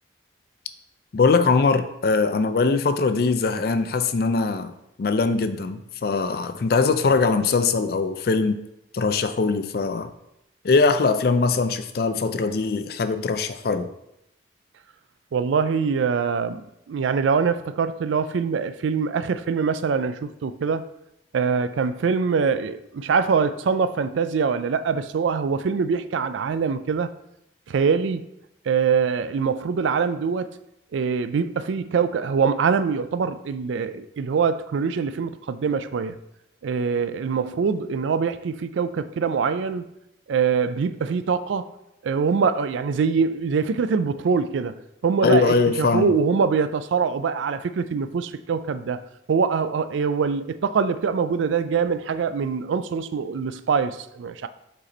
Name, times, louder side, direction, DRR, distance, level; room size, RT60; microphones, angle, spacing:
voice 1, 1.1-4.7 5.0-8.6 8.9-10.1 10.6-13.9 45.2-46.1, left 4 dB, 50° left, 0.4 m, -21 dB
voice 2, 15.3-20.8 21.3-27.1 27.7-28.3 28.7-30.5 30.9-36.1 36.6-39.8 40.3-41.7 42.0-44.8 45.0-49.0 49.3-54.5, right 5 dB, 80° right, 0.4 m, -23 dB
5.4 x 4.1 x 4.2 m
head